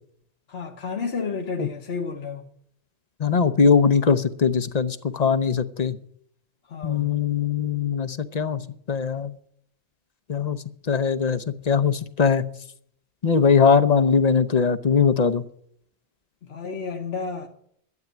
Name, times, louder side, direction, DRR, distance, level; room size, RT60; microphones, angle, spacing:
voice 1, 0.5-2.5 6.7-7.1 16.4-17.5, left 5 dB, 65° left, 1.3 m, -31 dB
voice 2, 3.2-6.0 6.8-8.6 8.9-9.3 10.3-10.6 10.9-12.4 13.2-15.4, left 6 dB, 40° left, 0.8 m, -20 dB
12.0 x 8.6 x 9.2 m
omnidirectional pair, 1.1 m